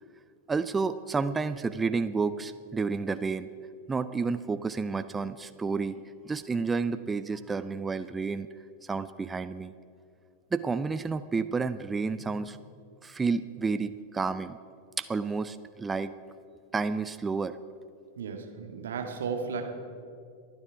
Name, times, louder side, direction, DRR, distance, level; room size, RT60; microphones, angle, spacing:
voice 1, 0.5-3.5 3.9-6.0 6.2-8.5 8.8-9.7 10.5-12.6 13.0-14.6 15.0-16.1 16.7-17.6, right 4 dB, 15° right, 12 dB, 0.5 m, -30 dB
voice 2, 12.1-12.4 18.2-19.6, right 5 dB, 65° right, 4 dB, 1.9 m, -35 dB
27.5 x 9.7 x 4.8 m, 2.4 s
figure-of-eight pair, 90°, 0 cm